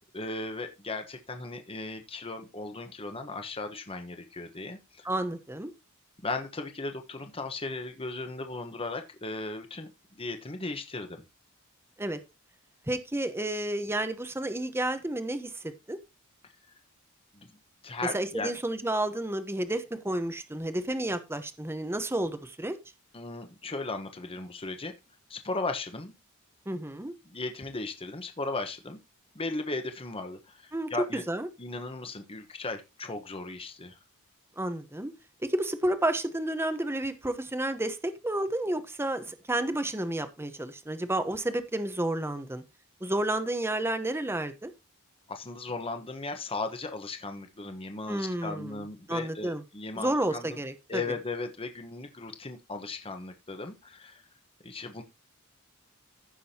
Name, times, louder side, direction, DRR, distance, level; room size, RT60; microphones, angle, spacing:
voice 1, 0.1-5.1 6.2-9.9 10.2-11.2 17.3-17.5 17.8-18.5 23.1-24.9 25.3-26.1 27.3-29.0 29.3-31.2 31.6-34.0 45.3-50.6 50.9-54.2 54.6-55.0, left 3 dB, 25° left, 6 dB, 1.1 m, -36 dB
voice 2, 5.0-5.7 12.0-12.2 12.9-16.0 18.1-22.8 26.7-27.1 30.7-31.5 34.6-35.1 35.4-42.6 43.0-44.7 48.1-48.8 49.1-49.6 50.0-51.0, right 1 dB, 10° right, 10 dB, 0.9 m, -31 dB
15.0 x 6.1 x 2.9 m, 0.25 s
head